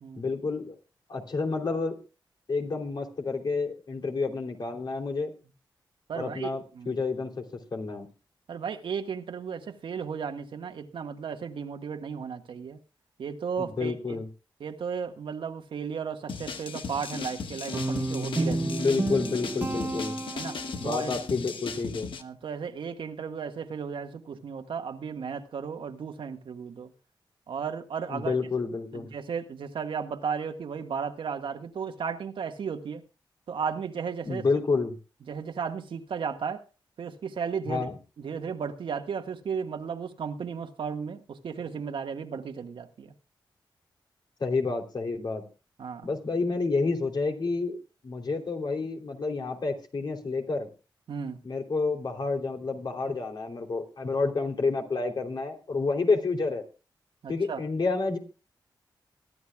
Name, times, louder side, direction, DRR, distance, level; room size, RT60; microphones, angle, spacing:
voice 1, 0.2-0.7 1.1-2.0 2.5-5.3 6.1-7.3 7.7-8.1 13.6-14.3 18.6-20.2 20.8-22.1 28.1-29.1 34.2-35.0 37.7-37.9 44.4-45.4 46.0-50.7 51.4-56.6 57.3-58.2, left 4 dB, 60° left, 2 dB, 3.2 m, -29 dB
voice 2, 6.1-6.5 6.8-7.0 8.5-12.8 13.2-14.2 14.6-18.8 20.3-21.1 22.2-26.9 27.5-28.4 28.9-33.0 33.5-34.4 35.3-36.6 37.0-37.9 38.2-43.1 45.8-46.1 51.1-51.4 57.2-57.6, right 6 dB, 80° right, 6 dB, 1.6 m, -34 dB
sound 1, 16.3-22.2, left 5 dB, 80° left, 1.3 m, -37 dB
Guitar, 17.7-21.0, right 2 dB, 25° right, 1.4 m, -31 dB
23.0 x 11.5 x 2.3 m, 0.33 s
cardioid pair, 70°, 9 cm